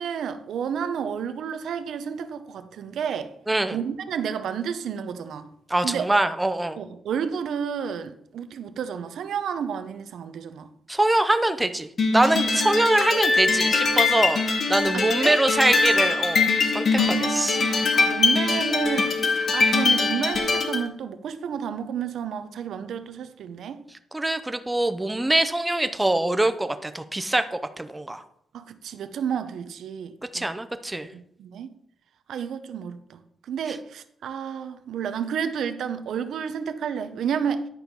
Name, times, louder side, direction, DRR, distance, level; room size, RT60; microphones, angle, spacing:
voice 1, 0.0-3.3 3.7-5.5 5.8-6.1 6.8-10.7 14.9-15.4 17.0-23.8 28.5-30.5 31.1-31.7 32.3-37.7, right 7 dB, 75° right, 0.7 m, -31 dB
voice 2, 3.5-3.8 5.7-6.8 10.9-16.5 16.7-17.6 24.1-28.2 30.3-31.1, right 1 dB, 10° right, 0.6 m, -23 dB
sound 1, 12.0-20.8, left 4 dB, 50° left, 1.3 m, -22 dB
10.5 x 4.5 x 5.3 m
cardioid pair, 130°, 0 cm